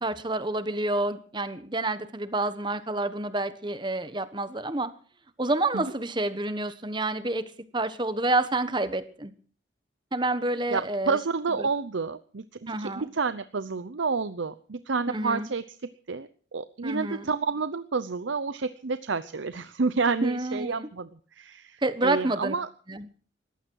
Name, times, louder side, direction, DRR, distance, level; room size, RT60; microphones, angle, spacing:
voice 1, 0.0-4.9 5.4-7.4 7.7-9.3 10.1-11.2 11.6-11.7 12.7-13.1 15.1-15.5 16.8-17.3 20.2-20.9 21.8-22.5 22.9-23.1, right 2 dB, 25° right, 12 dB, 1.2 m, -28 dB
voice 2, 10.7-15.6 16.1-22.7, right 4 dB, 80° right, 12 dB, 0.7 m, -29 dB
20.0 x 15.0 x 4.7 m, 0.43 s
head